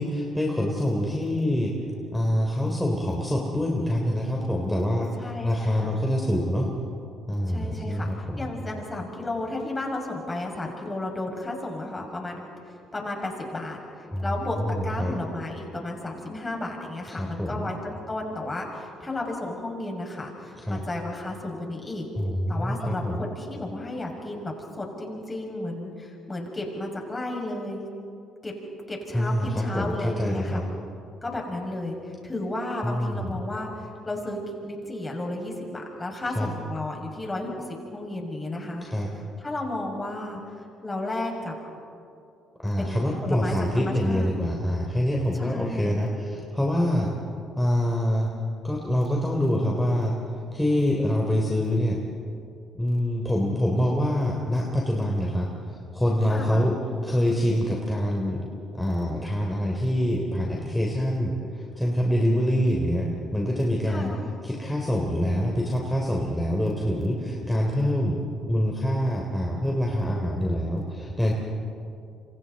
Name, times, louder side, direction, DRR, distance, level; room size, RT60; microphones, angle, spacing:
voice 1, 0.0-1.7 2.1-6.7 7.3-8.7 14.1-14.2 14.6-15.1 17.1-17.7 20.6-20.8 22.2-23.3 29.1-30.7 32.8-33.3 36.3-36.5 38.8-39.1 42.6-47.1 47.6-48.3 48.6-50.2 50.5-52.0 52.7-58.4 58.7-64.1 64.4-68.2 68.5-71.3, equal, 5° left, -1 dB, 3.5 m, -25 dB
voice 2, 5.2-6.0 7.5-22.0 22.5-27.9 28.4-28.5 28.9-30.6 31.2-38.9 39.4-40.4 40.8-41.5 42.8-44.3 45.3-46.0 56.3-56.7 63.8-64.3, left 2 dB, 25° left, 0 dB, 6.5 m, -33 dB
28.5 x 26.0 x 4.2 m, 2.6 s
supercardioid pair, 65°, 0 cm